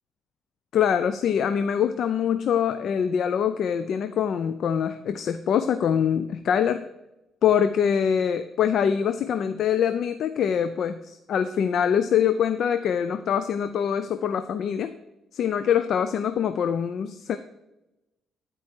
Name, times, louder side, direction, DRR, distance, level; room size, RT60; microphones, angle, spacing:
voice 1, 0.7-6.9 7.4-14.9 15.3-17.4, left 8 dB, 65° left, 10 dB, 0.4 m, -24 dB
11.5 x 4.8 x 4.5 m, 0.97 s
cardioid pair, 90°, 0 cm